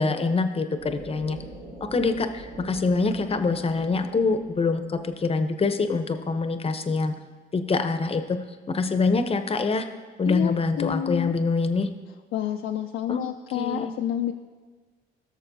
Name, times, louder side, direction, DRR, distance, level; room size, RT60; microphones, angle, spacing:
voice 1, 0.0-1.4 1.8-7.1 7.5-8.4 8.7-9.9 10.2-11.9 13.1-13.2 13.5-13.9, left 4 dB, 30° left, 8 dB, 0.7 m, -25 dB
sound 1, 0.8-6.2, right 2 dB, 85° right, 2.5 m, -44 dB
voice 2, 10.3-11.3 12.3-14.3, left 11 dB, 80° left, 5 dB, 0.4 m, -29 dB
17.0 x 6.5 x 2.7 m, 1.4 s
cardioid pair, 90°, 20 cm